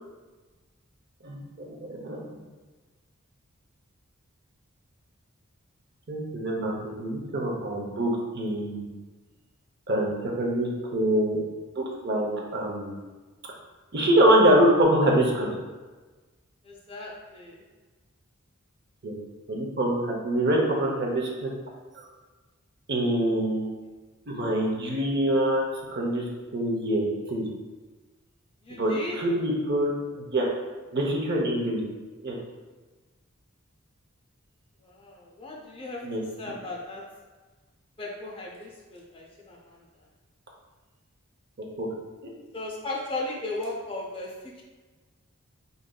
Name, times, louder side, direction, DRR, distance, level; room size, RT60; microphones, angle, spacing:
voice 1, 1.7-2.4 6.1-8.9 9.9-11.4 11.8-12.9 13.9-15.5 19.0-19.1 19.5-21.5 21.9-22.1 22.9-23.7 24.3-25.7 25.9-26.3 26.5-27.5 28.8-29.9 30.2-30.5 30.9-31.8 32.2-32.4 36.0-36.2 41.8-41.9, right 1 dB, 50° right, -2 dB, 0.7 m, -25 dB
voice 2, 16.6-17.6 28.6-29.2 34.8-36.0 36.4-37.0 38.0-39.8 42.5-44.6, left 2 dB, 25° left, -3 dB, 0.6 m, -36 dB
4.8 x 2.6 x 2.2 m, 1.3 s
head